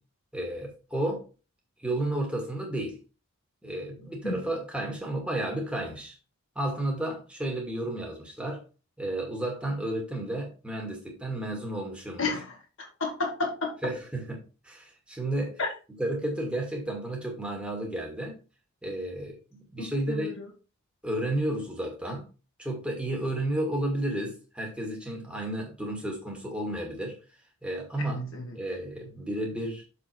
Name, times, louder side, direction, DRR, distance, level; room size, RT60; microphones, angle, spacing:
voice 1, 0.3-1.3 1.8-3.0 3.6-6.1 6.6-8.6 9.0-12.3 13.8-15.6 15.9-18.4 18.8-20.3 21.0-22.3 22.6-27.2 27.6-28.2 28.5-29.8, right 1 dB, 5° right, 2.4 m, -32 dB
voice 2, 13.0-13.7 15.6-15.7 19.8-20.3 28.0-28.5, left 3 dB, 60° left, 2.3 m, -31 dB
7.1 x 5.1 x 4.6 m
head